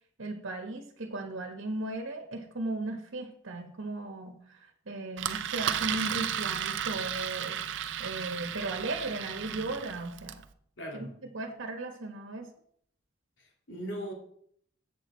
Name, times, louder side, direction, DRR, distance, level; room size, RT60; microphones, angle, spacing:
voice 1, 0.2-10.4 10.9-11.1 11.3-12.5, right 2 dB, 90° right, 4 dB, 1.2 m, -37 dB
Engine, 5.2-10.4, right 9 dB, 70° right, 0.5 m, -34 dB
voice 2, 10.8-11.1 13.4-14.1, right 1 dB, 75° left, 0 dB, 2.3 m, -39 dB
7.8 x 7.8 x 4.3 m, 0.65 s
head